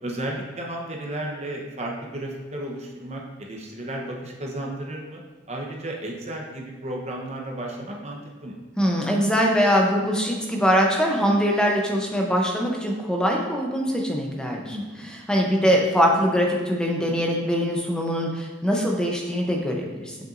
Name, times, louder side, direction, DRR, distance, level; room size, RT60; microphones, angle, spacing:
voice 1, 0.0-5.2 5.5-8.6 14.7-15.2, right 1 dB, 35° right, 0 dB, 1.0 m, -33 dB
voice 2, 8.8-14.8 15.0-20.2, equal, 5° left, -1 dB, 0.8 m, -22 dB
7.6 x 6.0 x 2.6 m, 1.3 s
head